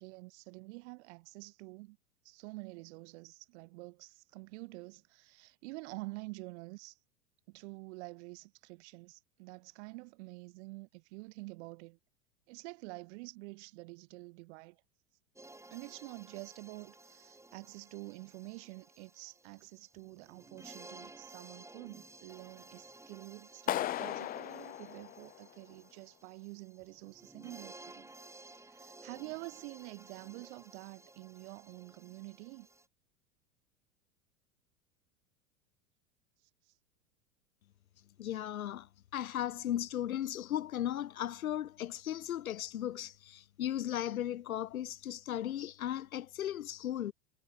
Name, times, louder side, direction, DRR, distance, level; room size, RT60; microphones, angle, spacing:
voice 1, 0.0-2.0 2.2-7.0 7.5-12.0 12.5-14.8 15.7-28.1 28.4-32.7 36.7-36.8, right 25 dB, 55° right, 2.9 m, -48 dB
sound 1, 15.4-32.9, right 2 dB, 5° right, 5.1 m, -55 dB
Clapping, 23.7-25.7, left 13 dB, 20° left, 0.5 m, -37 dB
voice 2, 38.2-47.1, left 11 dB, 80° left, 0.6 m, -36 dB
figure-of-eight pair, 90°, 41 cm